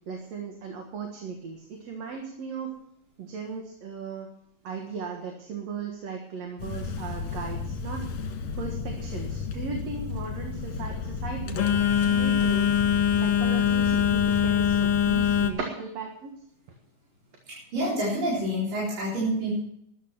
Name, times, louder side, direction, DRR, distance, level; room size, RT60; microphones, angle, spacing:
voice 1, 0.1-2.7 3.2-4.3 4.6-8.0 8.6-12.7 13.2-16.3, right 5 dB, 55° right, 2 dB, 2.5 m, -37 dB
Telephone, 6.6-15.5, left 8 dB, 60° left, 2.6 m, -25 dB
voice 2, 17.5-19.6, equal, 80° right, -7 dB, 5.9 m, -28 dB
13.5 x 11.5 x 6.0 m, 0.75 s
omnidirectional pair, 3.9 m